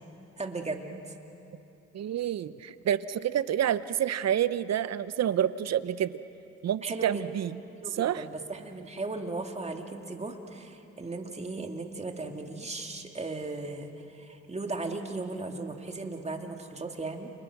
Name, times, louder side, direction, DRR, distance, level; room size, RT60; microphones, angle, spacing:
voice 1, 0.4-0.9 6.8-7.3 7.8-17.3, right 3 dB, 20° right, 4 dB, 2.3 m, -37 dB
voice 2, 1.9-6.1 6.6-7.6 7.9-8.2, right 10 dB, 60° right, 15 dB, 0.9 m, -28 dB
30.0 x 29.0 x 6.1 m, 3.0 s
cardioid pair, 90°, 30 cm